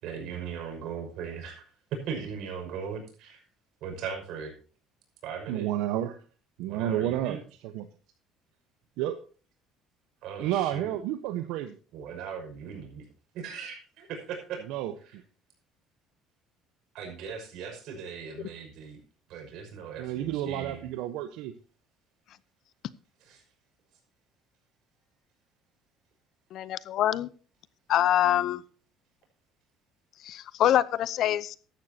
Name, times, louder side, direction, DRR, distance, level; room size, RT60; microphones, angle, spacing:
voice 1, 0.0-3.4 3.8-4.5 5.2-5.7 6.7-7.4 10.2-11.0 11.9-13.0 13.3-14.6 15.0-15.2 16.9-19.0 19.3-20.8 23.2-23.4, right 6 dB, 60° right, 3 dB, 5.8 m, -38 dB
voice 2, 5.5-6.2 6.6-7.4 7.6-7.9 9.0-9.2 10.4-11.7 14.7-14.9 20.0-21.5, right 12 dB, 80° right, 9 dB, 1.0 m, -30 dB
voice 3, 26.5-27.3 27.9-28.6 30.2-31.6, left 12 dB, 50° left, 19 dB, 0.6 m, -25 dB
15.0 x 11.5 x 2.8 m, 0.38 s
cardioid pair, 165°, 0 cm